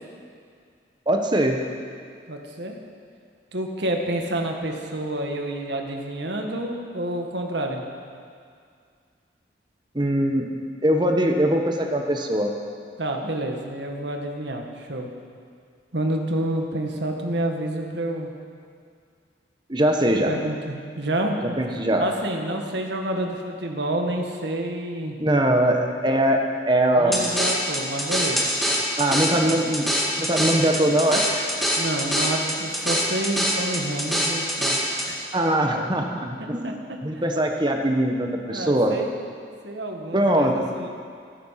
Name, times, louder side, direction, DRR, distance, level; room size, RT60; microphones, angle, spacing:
voice 1, 1.1-1.6 9.9-10.4 10.8-12.5 19.7-20.3 21.6-22.0 25.2-27.2 29.0-29.9 30.2-31.5 35.3-38.9 40.1-40.5, right 1 dB, 25° right, 3 dB, 1.2 m, -21 dB
voice 2, 2.3-2.8 3.5-7.8 13.0-15.1 15.9-18.3 20.2-21.6 22.0-25.2 27.0-28.4 29.1-29.6 31.8-35.2 36.6-36.7 38.5-39.1 39.6-40.9, right 1 dB, 70° right, 2 dB, 1.7 m, -29 dB
sound 1, 27.1-35.1, equal, ahead, 1.9 m, -24 dB
14.5 x 14.0 x 5.8 m, 2.2 s
head